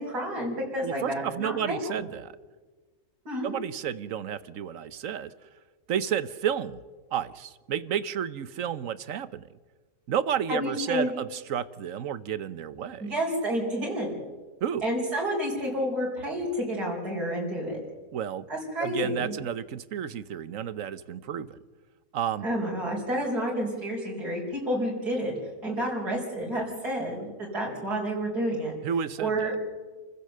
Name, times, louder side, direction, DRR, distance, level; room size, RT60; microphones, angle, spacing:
voice 1, 0.0-1.8 3.2-3.5 10.5-11.1 13.0-14.2 14.8-17.8 18.5-19.3 22.4-25.3 25.6-28.7 29.2-29.5, equal, 85° right, -4 dB, 4.9 m, -30 dB
voice 2, 0.8-2.3 3.4-5.3 5.9-6.8 7.1-9.4 10.1-13.1 14.6-14.8 18.1-18.4 18.8-21.6 22.1-22.5 28.8-29.5, right 9 dB, 60° right, 15 dB, 1.2 m, -31 dB
28.5 x 15.5 x 6.7 m, 1.3 s
omnidirectional pair, 1.6 m